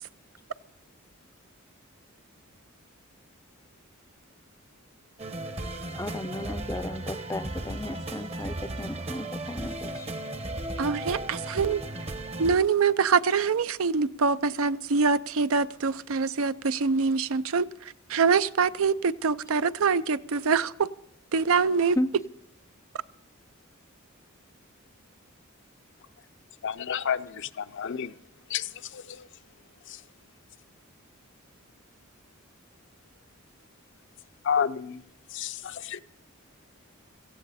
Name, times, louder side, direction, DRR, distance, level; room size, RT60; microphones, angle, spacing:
sound 1, 5.2-12.6, right 2 dB, 30° right, 0.9 m, -35 dB
voice 1, 6.0-9.9 22.0-22.1, left 1 dB, 15° left, 14 dB, 0.5 m, -33 dB
voice 2, 10.8-11.8 12.4-17.7 18.1-20.7 21.3-22.0, right 5 dB, 70° right, 15 dB, 0.5 m, -24 dB
voice 3, 26.6-28.1 28.5-29.2 34.4-35.0 35.3-36.0, left 7 dB, 60° left, 12 dB, 0.6 m, -30 dB
17.5 x 14.5 x 4.1 m, 0.71 s
head